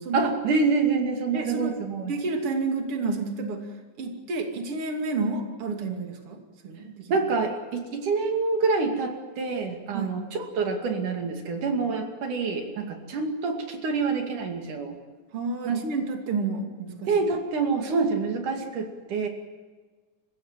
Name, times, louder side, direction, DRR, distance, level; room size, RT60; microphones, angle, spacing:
voice 1, 0.1-2.1 7.1-15.0 15.7-15.8 17.1-19.3, right 4 dB, 80° right, 3 dB, 3.9 m, -26 dB
voice 2, 1.3-1.8 2.1-7.1 9.9-10.2 15.3-17.1, right 3 dB, 45° right, 3 dB, 3.4 m, -30 dB
29.0 x 16.5 x 7.5 m, 1.4 s
omnidirectional pair, 3.5 m